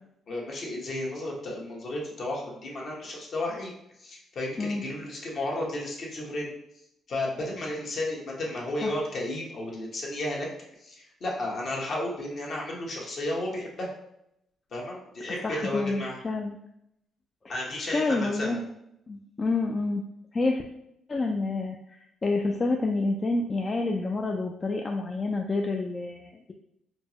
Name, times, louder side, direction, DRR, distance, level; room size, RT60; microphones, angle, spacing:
voice 1, 0.3-3.7 4.0-6.5 7.1-10.5 10.8-13.9 14.7-16.2 17.5-18.5, left 1 dB, 55° left, -2 dB, 1.0 m, -33 dB
voice 2, 15.4-16.5 17.4-18.6 19.1-20.0 20.3-20.6 21.1-26.5, left 3 dB, 30° left, 2 dB, 0.3 m, -28 dB
4.3 x 2.0 x 2.8 m, 0.78 s
cardioid pair, 90°, 0 cm